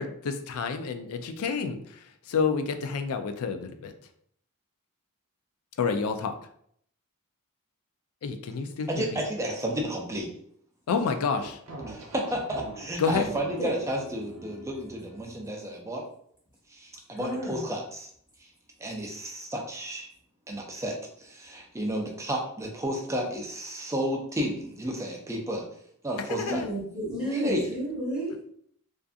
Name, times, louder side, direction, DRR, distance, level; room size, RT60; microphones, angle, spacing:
voice 1, 0.0-2.0 2.3-3.9 5.8-6.3 8.2-9.2 10.9-11.6 13.0-13.3 26.4-26.7, left 5 dB, 75° left, 7 dB, 0.3 m, -29 dB
voice 2, 8.9-10.3 11.9-16.1 16.7-18.1 18.8-20.1 20.5-25.6 26.0-26.6 27.2-27.8, equal, 15° right, 0 dB, 0.4 m, -32 dB
sound 1, 11.4-15.5, right 1 dB, 65° right, 0.6 m, -43 dB
voice 3, 17.2-17.6 26.3-28.3, right 1 dB, 20° left, -8 dB, 1.0 m, -32 dB
2.5 x 2.4 x 2.3 m, 0.66 s
head